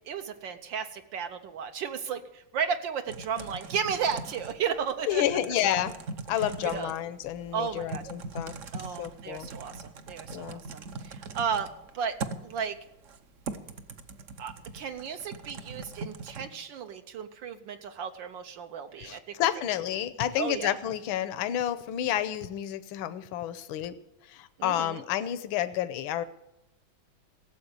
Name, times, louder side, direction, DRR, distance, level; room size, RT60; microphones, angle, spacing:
voice 1, 0.1-5.2 6.4-6.9 7.5-8.0 8.7-11.7 11.9-12.2 12.4-12.8 14.4-19.3 20.4-20.8 24.6-25.0, right 7 dB, 70° right, 7 dB, 1.5 m, -34 dB
Typing, 3.1-16.5, right 3 dB, 55° right, 0.9 m, -41 dB
voice 2, 5.1-5.9 6.3-8.5 9.0-9.5 10.3-10.6 19.0-23.9 24.3-26.2, left 11 dB, 80° left, 12 dB, 1.5 m, -30 dB
17.0 x 7.8 x 8.2 m, 0.88 s
omnidirectional pair, 2.2 m